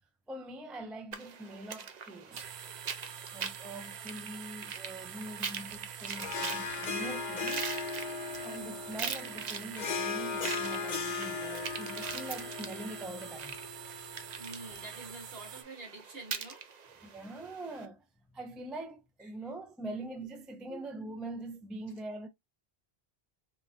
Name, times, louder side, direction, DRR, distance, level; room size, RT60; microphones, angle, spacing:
voice 1, 0.3-2.6 3.3-7.7 8.4-13.6 17.0-22.3, right 2 dB, ahead, 0.3 m, -43 dB
sound 1, 1.1-17.9, right 6 dB, 50° right, 0.6 m, -43 dB
sound 2, 2.3-15.6, right 8 dB, 90° right, 0.9 m, -46 dB
Harp, 6.1-14.8, left 5 dB, 50° left, 0.7 m, -38 dB
voice 2, 14.4-16.6 19.2-19.3 20.7-20.8, right 2 dB, 70° right, 1.7 m, -47 dB
4.8 x 2.5 x 2.6 m
omnidirectional pair, 1.0 m